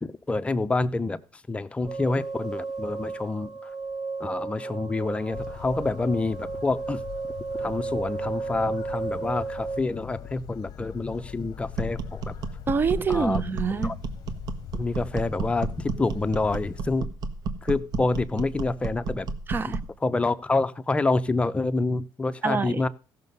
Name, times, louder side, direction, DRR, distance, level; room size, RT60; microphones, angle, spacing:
voice 1, 0.0-3.7 4.2-7.0 7.6-12.4 13.1-13.4 13.8-14.0 14.7-17.1 17.6-19.3 20.0-22.9, left 3 dB, 15° left, 0.7 m, -27 dB
sound 1, 1.9-9.8, right 4 dB, 10° right, 1.8 m, -33 dB
sound 2, 5.3-17.0, left 10 dB, 55° left, 0.8 m, -42 dB
sound 3, 11.7-20.0, right 4 dB, 60° right, 1.4 m, -32 dB
voice 2, 12.7-13.9 19.5-19.8 22.4-22.8, right 5 dB, 25° right, 0.7 m, -26 dB
15.5 x 6.6 x 5.4 m
cardioid pair, 125°, 8 cm